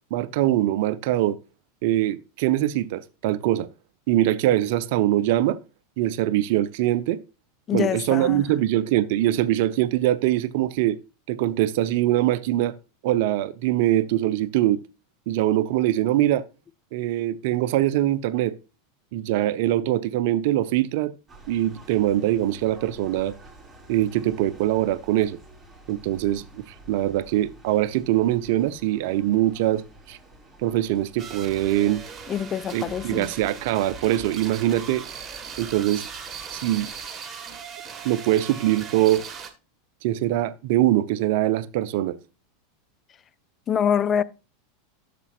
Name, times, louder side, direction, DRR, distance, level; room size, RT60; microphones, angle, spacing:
voice 1, 0.1-1.4 1.8-3.7 4.1-5.6 6.0-7.2 7.7-11.0 11.3-12.7 13.0-14.8 15.3-16.5 16.9-18.5 19.1-21.1 21.5-23.3 23.9-25.4 25.9-29.8 30.1-30.2 30.6-32.0 32.7-35.0 35.6-36.1 36.5-36.9 38.0-39.2 40.0-42.2, right 14 dB, 55° right, 0.6 m, -23 dB
voice 2, 7.7-8.4 32.3-33.3 43.7-44.2, left 8 dB, 30° left, 0.5 m, -25 dB
sound 1, 21.3-37.1, right 1 dB, 5° right, 3.9 m, -50 dB
sound 2, 31.2-39.5, right 6 dB, 25° right, 1.6 m, -39 dB
12.0 x 6.8 x 2.4 m
figure-of-eight pair, 85°, 0 cm